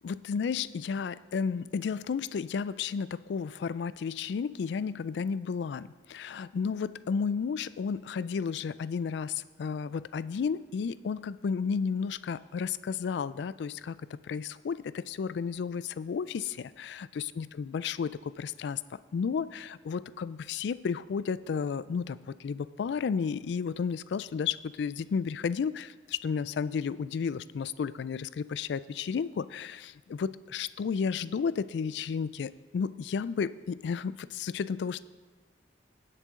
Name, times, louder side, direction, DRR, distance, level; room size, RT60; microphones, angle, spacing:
voice 1, 0.0-35.0, left 6 dB, 70° left, 17 dB, 0.3 m, -32 dB
18.0 x 6.7 x 3.7 m, 1.3 s
head